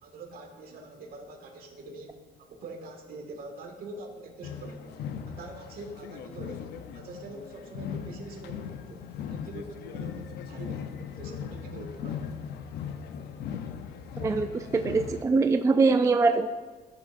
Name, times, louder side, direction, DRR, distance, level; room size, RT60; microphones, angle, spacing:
voice 1, 0.0-5.0 5.2-6.6 6.9-12.3, right 2 dB, 60° right, 2 dB, 1.9 m, -44 dB
sound 1, 4.4-15.2, left 7 dB, 75° left, 0.7 m, -39 dB
voice 2, 14.2-16.5, right 4 dB, 20° right, 8 dB, 0.4 m, -23 dB
14.0 x 7.4 x 2.6 m, 1.4 s
cardioid pair, 110°, 17 cm